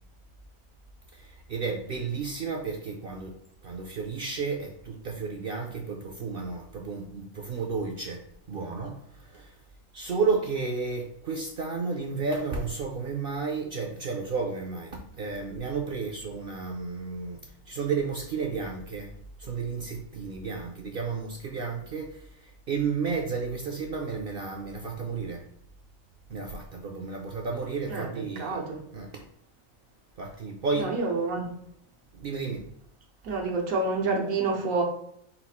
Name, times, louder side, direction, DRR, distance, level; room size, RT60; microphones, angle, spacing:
voice 1, 1.1-8.2 8.5-9.6 9.9-17.4 17.7-19.1 19.4-25.4 26.3-28.6 28.9-29.2 30.2-31.0 32.1-32.6, right 4 dB, 60° right, 1 dB, 0.6 m, -32 dB
voice 2, 28.4-28.8 30.8-31.5 33.2-34.8, right 3 dB, 90° right, 1 dB, 1.3 m, -28 dB
4.3 x 2.4 x 4.2 m, 0.72 s
omnidirectional pair, 1.4 m